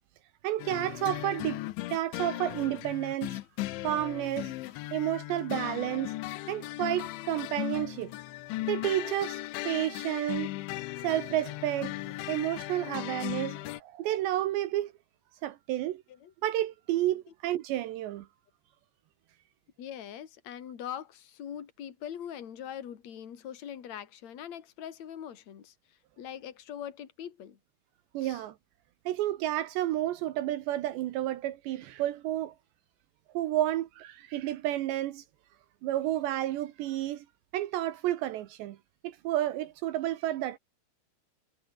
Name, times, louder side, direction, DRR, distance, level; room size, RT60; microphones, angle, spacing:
voice 1, 0.4-1.6 1.9-3.4 3.8-4.5 4.9-6.1 6.5-8.1 8.7-9.4 9.7-10.5 11.0-12.0 12.3-14.9 15.4-16.0 16.4-18.3 28.1-28.5 29.1-32.5 33.3-35.2 35.8-37.2 37.5-38.8 39.0-40.6, right 14 dB, 75° right, 3.2 m, -31 dB
sound 1, 0.6-13.8, left 18 dB, 85° left, 3.2 m, -37 dB
voice 2, 19.8-25.7 26.2-27.6 28.2-28.4, left 9 dB, 45° left, 3.2 m, -42 dB
omnidirectional pair, 5.4 m